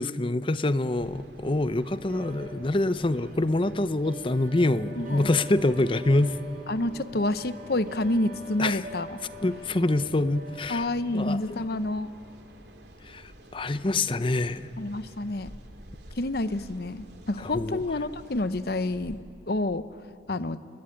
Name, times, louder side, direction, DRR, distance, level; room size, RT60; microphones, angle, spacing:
voice 1, 0.0-6.4 8.6-8.8 9.4-10.9 11.1-11.4 13.0-14.7 17.4-17.8, left 2 dB, 30° left, 14 dB, 0.7 m, -26 dB
sound 1, 1.0-19.2, right 1 dB, 65° right, 2.9 m, -49 dB
sound 2, 2.0-12.5, equal, 50° right, 3.7 m, -45 dB
voice 2, 5.0-5.3 6.7-9.2 10.7-12.1 14.8-15.5 16.2-19.2 19.5-19.9 20.3-20.6, left 2 dB, 60° left, 13 dB, 0.9 m, -28 dB
29.5 x 21.5 x 9.1 m, 2.5 s
head